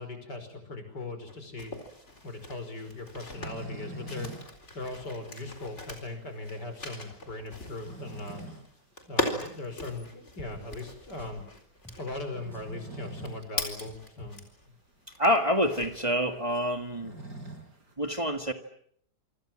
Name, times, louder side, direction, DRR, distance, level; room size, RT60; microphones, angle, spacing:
voice 1, 0.0-1.7 2.2-4.3 4.7-8.4 9.1-11.4 12.0-14.4, left 2 dB, 85° left, 8 dB, 5.9 m, -39 dB
sound 1, 1.3-14.7 15.1-16.2, left 2 dB, 40° left, 4.5 m, -39 dB
sound 2, 2.1-4.5 4.8-4.9 5.3-5.4 5.9-6.0 7.5-8.7 9.1-9.2 10.8-11.0 12.2-13.5 13.8-13.9 14.2-14.3 15.0-15.1 15.3-17.9, right 2 dB, 85° right, 5.5 m, -44 dB
Drum, 9.2-9.3 9.8-10.1 10.5-10.7 11.2-11.4 11.8-12.0 12.5-12.8 13.2-13.3 13.8-14.4, equal, ahead, 5.7 m, -50 dB
voice 2, 15.2-17.2 18.0-18.5, equal, 20° right, 6 dB, 1.9 m, -27 dB
27.5 x 26.0 x 7.6 m, 0.68 s
omnidirectional pair, 1.8 m